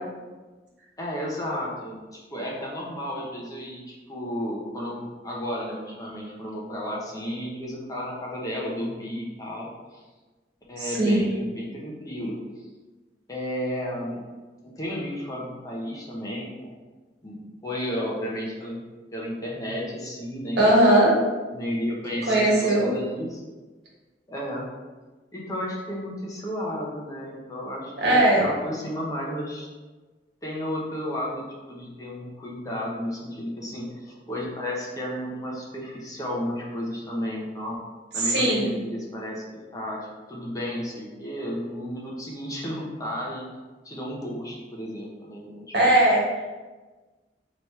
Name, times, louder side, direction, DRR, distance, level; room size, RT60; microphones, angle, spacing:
voice 1, 1.0-10.0 10.7-12.4 13.3-14.2 14.6-16.7 17.2-17.4 17.6-18.8 19.1-21.1 21.5-23.4 24.3-24.7 25.3-29.7 30.4-37.8 38.1-39.4 39.7-40.0 40.3-43.5 43.8-45.6, equal, 20° left, -4 dB, 0.8 m, -33 dB
voice 2, 10.8-11.2 20.6-21.1 22.3-22.9 28.0-28.5 38.1-38.7 45.7-46.4, right 1 dB, 70° right, -4 dB, 1.3 m, -19 dB
3.4 x 3.0 x 4.2 m, 1.3 s
head